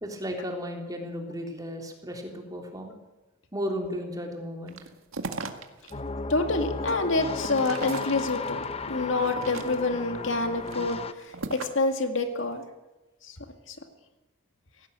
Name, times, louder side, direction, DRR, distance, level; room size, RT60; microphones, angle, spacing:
voice 1, 0.0-2.9 3.5-4.8, equal, 20° right, 2 dB, 3.4 m, -34 dB
sound 1, 4.7-5.9 6.4-8.6 9.2-10.0 10.6-11.9, right 3 dB, 90° right, 1.9 m, -38 dB
sound 2, 5.9-11.1, left 3 dB, 30° left, 0.9 m, -34 dB
voice 2, 6.3-11.0 11.5-12.6 13.2-13.4 13.7-13.8, left 3 dB, 65° left, 6 dB, 2.1 m, -27 dB
17.5 x 17.0 x 9.0 m, 1.1 s
head